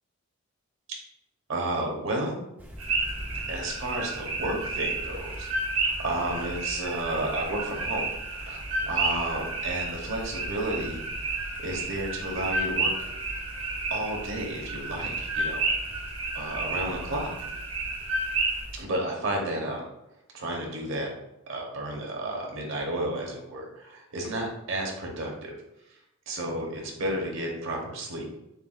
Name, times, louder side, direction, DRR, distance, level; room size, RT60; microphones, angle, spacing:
voice 1, 1.5-2.4 3.5-5.5 5.8-8.6 8.9-11.0 11.6-12.9 13.9-15.7 16.3-17.3 18.8-19.9 20.3-21.1 21.5-25.5 26.3-28.3, right 1 dB, 60° right, 0 dB, 1.0 m, -32 dB
sound 1, 2.6-18.8, equal, 10° right, 0.3 m, -43 dB
sound 2, 2.8-18.6, right 3 dB, 85° right, 1.2 m, -31 dB
6.7 x 2.4 x 2.4 m, 0.87 s
head